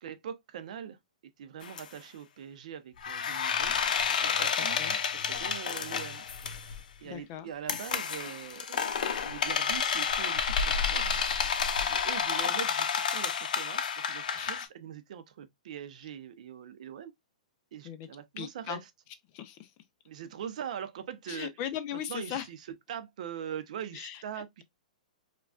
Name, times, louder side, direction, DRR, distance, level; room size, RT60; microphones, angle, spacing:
voice 1, 0.0-1.0 1.4-3.7 4.2-4.8 5.1-6.2 7.0-8.8 9.2-11.2 11.9-17.1 17.7-18.8 20.1-21.5 22.1-22.6 22.9-24.6, right 9 dB, 60° right, 0.6 m, -42 dB
sound 1, 1.6-1.8 3.0-6.8 7.7-14.6, left 6 dB, 75° left, 0.6 m, -30 dB
voice 2, 4.6-5.0 7.0-7.5 14.4-14.7 17.8-18.1 18.4-18.8 19.3-19.7 21.3-22.5 23.9-24.6, left 10 dB, 30° left, 0.4 m, -39 dB
4.9 x 2.3 x 2.3 m
hypercardioid pair, 160°, 4 cm